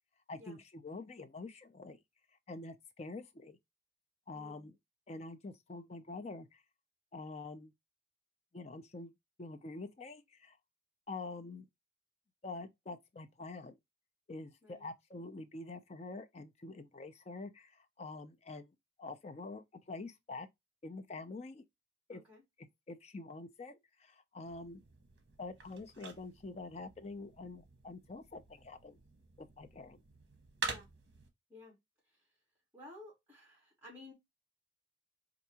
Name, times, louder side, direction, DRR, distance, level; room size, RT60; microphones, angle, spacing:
voice 1, 0.3-2.0 2.5-3.6 4.3-4.7 5.1-6.6 7.1-7.7 8.5-9.1 9.4-10.6 11.1-11.7 12.4-13.8 14.3-20.5 20.8-21.6 22.1-22.2 22.6-24.8 25.4-29.0 29.4-30.0, left 3 dB, 35° left, 0.4 m, -46 dB
voice 2, 4.3-4.7 14.6-14.9 22.1-22.4 30.6-30.9 31.5-31.8 32.1-32.3 32.7-34.1, left 2 dB, 10° right, 2.1 m, -55 dB
sound 1, 24.4-31.3, right 4 dB, 60° right, 0.9 m, -47 dB
4.5 x 2.5 x 2.8 m
head